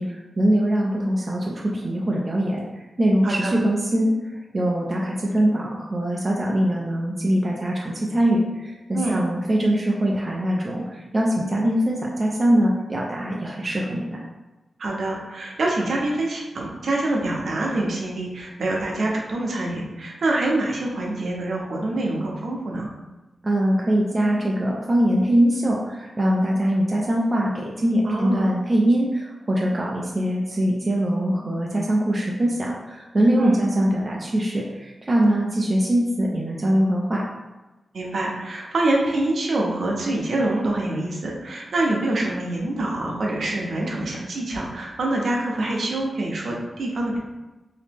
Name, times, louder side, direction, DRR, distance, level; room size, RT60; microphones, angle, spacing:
voice 1, 0.0-14.2 23.4-37.2, right 1 dB, 25° right, -3 dB, 0.4 m, -22 dB
voice 2, 3.2-3.6 8.9-9.2 14.8-22.9 28.0-28.5 33.4-33.6 37.9-47.2, right 2 dB, 60° right, -2 dB, 0.7 m, -25 dB
2.9 x 2.7 x 3.4 m, 1.1 s
wide cardioid pair, 170°, 0 cm